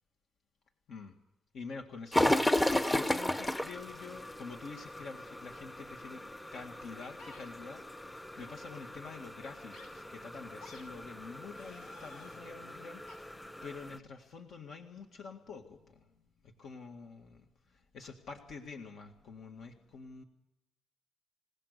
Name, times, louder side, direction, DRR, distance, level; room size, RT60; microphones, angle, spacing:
voice 1, 1.5-6.2 6.5-16.1 16.6-20.2, left 4 dB, 60° left, 3 dB, 2.0 m, -47 dB
sound 1, 2.1-14.0, left 1 dB, 10° left, 0.9 m, -35 dB
sound 2, 7.2-7.4 8.4-8.6 9.7-9.9 10.6-10.8 11.5-12.4 13.1-13.2, left 4 dB, 90° left, 6.4 m, -54 dB
27.5 x 17.5 x 6.8 m, 0.91 s
cardioid pair, 100°, 0 cm